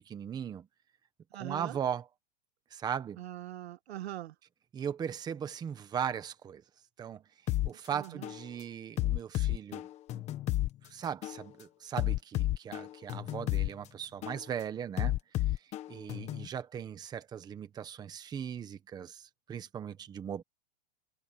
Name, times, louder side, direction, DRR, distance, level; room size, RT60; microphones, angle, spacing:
voice 1, 0.1-0.7 1.4-2.0 2.7-3.2 4.7-6.6 7.0-7.2 7.6-9.8 10.1-10.2 10.9-15.2 15.9-20.4, right 8 dB, 15° right, 1.1 m, -38 dB
voice 2, 1.3-1.8 3.2-4.3 7.9-8.3, right 13 dB, 90° right, 1.8 m, -42 dB
sound 1, 7.5-7.7 8.2-8.4 9.0-10.7 11.2-11.4 12.0-13.7 14.2-14.4 15.0-16.5, left 15 dB, 20° left, 1.0 m, -31 dB
supercardioid pair, 165°, 31 cm